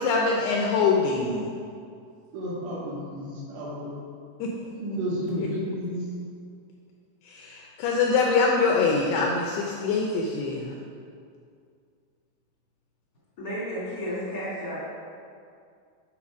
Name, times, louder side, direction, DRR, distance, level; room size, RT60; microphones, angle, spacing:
voice 1, 0.0-1.5 4.4-4.7 5.4-5.5 7.3-10.7, left 4 dB, 85° left, -1 dB, 2.3 m, -24 dB
voice 2, 2.3-3.9 4.8-6.0, equal, 80° right, -11 dB, 4.3 m, -31 dB
voice 3, 13.4-14.9, equal, 60° left, -9 dB, 0.9 m, -32 dB
9.9 x 4.3 x 5.9 m, 2.3 s
omnidirectional pair, 5.5 m